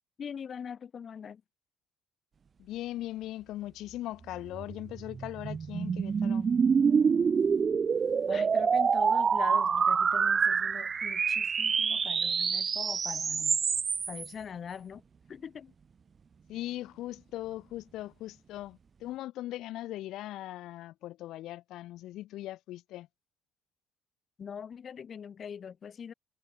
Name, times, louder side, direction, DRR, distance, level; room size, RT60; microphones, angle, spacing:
voice 1, 0.2-1.4 8.3-13.6 14.1-15.0 15.3-15.7 24.4-26.1, left 7 dB, 40° left, 0.8 m, -42 dB
voice 2, 2.6-6.5 16.5-23.1, left 15 dB, 70° left, 1.1 m, -39 dB
sound 1, 4.5-14.3, right 6 dB, 30° right, 0.3 m, -27 dB
cardioid pair, 115°, 0 cm